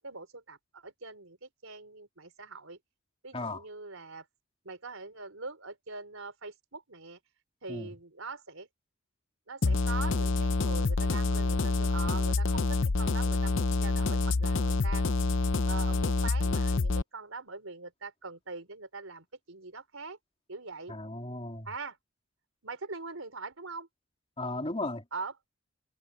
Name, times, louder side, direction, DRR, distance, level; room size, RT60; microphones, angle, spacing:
voice 1, 0.0-2.8 3.2-4.3 4.6-7.2 7.6-8.7 9.5-15.0 15.6-20.2 20.5-20.9 21.6-22.0 22.6-23.9 25.1-25.3, right 3 dB, 75° right, 4.3 m, -42 dB
voice 2, 3.3-3.6 7.7-7.9 20.9-21.7 24.4-25.0, left 2 dB, 30° left, 3.4 m, -35 dB
sound 1, 9.6-17.0, left 3 dB, 60° left, 0.7 m, -27 dB
head